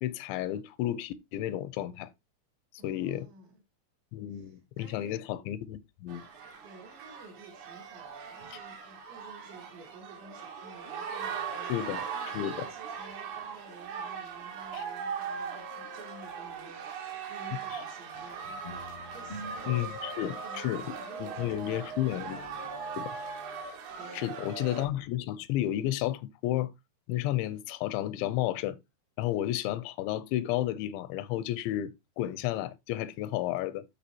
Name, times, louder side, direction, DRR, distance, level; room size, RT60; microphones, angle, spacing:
voice 1, 0.0-2.1 2.8-3.3 4.1-6.2 11.6-12.1 12.3-12.5 14.7-14.8 17.7-17.8 19.7-20.8 21.2-22.4 23.0-23.2 24.1-26.7 27.1-28.8 29.2-33.8, left 13 dB, 85° left, 3.0 m, -32 dB
voice 2, 2.8-3.6 4.3-5.3 6.6-22.4 23.9-24.5, right 3 dB, 75° right, 4.6 m, -52 dB
sound 1, 6.1-24.9, right 6 dB, 55° right, 2.4 m, -39 dB
sound 2, 18.6-21.0 21.4-23.6, left 1 dB, 30° left, 0.7 m, -49 dB
12.5 x 5.0 x 2.8 m
omnidirectional pair, 5.1 m